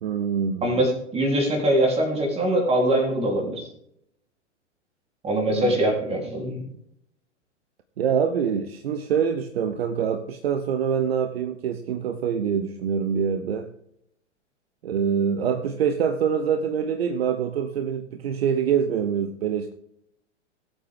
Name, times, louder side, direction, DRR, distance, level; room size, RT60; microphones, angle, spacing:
voice 1, 0.0-0.8 5.5-5.8 8.0-13.7 14.8-19.7, right 7 dB, 55° right, 9 dB, 1.0 m, -25 dB
voice 2, 0.6-3.6 5.2-6.6, right 1 dB, 15° right, 0 dB, 3.8 m, -23 dB
18.5 x 8.1 x 3.7 m, 0.75 s
figure-of-eight pair, 105°, 36 cm